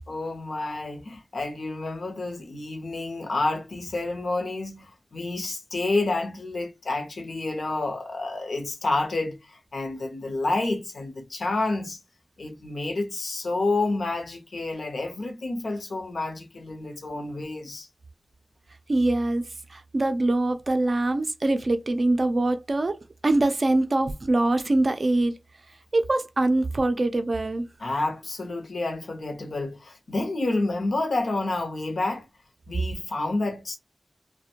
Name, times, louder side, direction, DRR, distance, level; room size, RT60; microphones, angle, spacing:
voice 1, 0.1-12.0 12.4-17.9 27.8-32.3 32.7-33.8, left 2 dB, 80° left, 0.6 m, -29 dB
voice 2, 18.9-23.0 23.2-25.4 25.9-27.7, right 2 dB, 45° right, 0.4 m, -23 dB
2.4 x 2.1 x 2.7 m
wide cardioid pair, 100°, 0 cm